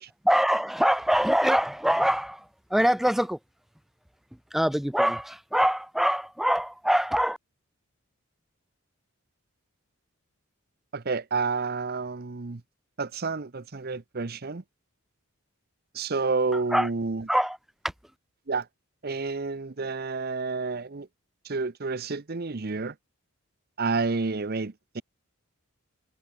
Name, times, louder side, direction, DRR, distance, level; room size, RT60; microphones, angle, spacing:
voice 1, 0.2-3.4 4.5-7.4 16.5-16.9 17.3-17.6, equal, ahead, 0.3 m, -24 dB
voice 2, 10.9-12.6 13.0-14.6 15.9-17.2 18.5-18.7 19.0-21.1 21.4-22.9 23.8-25.0, right 4 dB, 45° right, 0.8 m, -29 dB
head